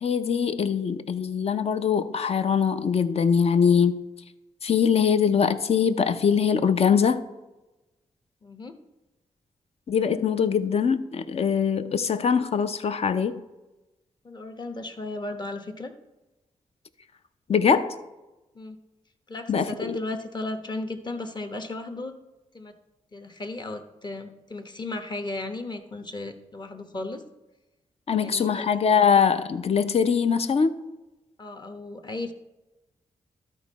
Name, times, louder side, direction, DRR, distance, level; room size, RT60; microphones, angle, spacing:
voice 1, 0.0-4.0 4.6-7.2 9.9-13.4 17.5-17.9 19.5-20.0 28.1-30.8, left 6 dB, 55° left, 0.6 m, -22 dB
voice 2, 8.4-8.8 14.2-15.9 18.5-18.8 19.3-22.1 22.5-22.7 23.1-27.2 28.1-28.7 31.4-32.3, left 2 dB, 35° left, 1.0 m, -35 dB
12.5 x 4.5 x 4.1 m
cardioid pair, 60°, 12 cm